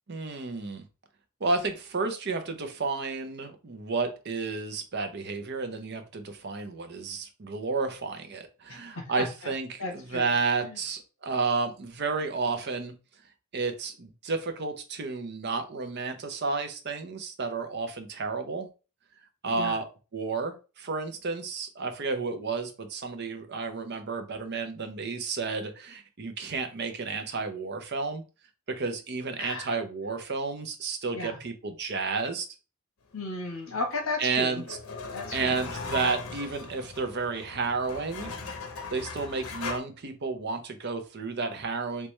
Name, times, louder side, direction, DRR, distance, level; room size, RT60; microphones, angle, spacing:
voice 1, 0.1-0.8 1.4-12.9 13.5-18.7 19.4-28.2 28.7-32.5 34.2-34.8 35.3-38.3 38.9-42.1, right 4 dB, 50° right, 6 dB, 0.6 m, -31 dB
voice 2, 9.0-9.5 9.8-10.3 10.6-10.8 19.5-19.8 29.4-29.7 31.1-31.4 33.1-34.6 35.1-35.6, left 2 dB, 70° left, 2 dB, 1.1 m, -34 dB
sound 1, 33.9-39.8, left 4 dB, 90° left, 0.7 m, -39 dB
3.3 x 3.1 x 3.1 m, 0.32 s
head